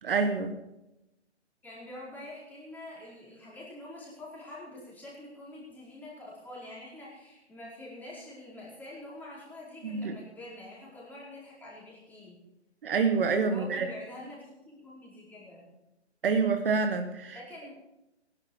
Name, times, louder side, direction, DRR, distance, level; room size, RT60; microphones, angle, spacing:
voice 1, 0.0-0.6 9.8-10.1 12.8-13.9 16.2-17.4, right 4 dB, 50° right, 7 dB, 1.4 m, -27 dB
voice 2, 1.6-12.4 13.5-15.7 17.2-17.7, left 1 dB, 5° left, -6 dB, 4.7 m, -46 dB
18.0 x 11.0 x 4.8 m, 0.93 s
figure-of-eight pair, 145°, 34 cm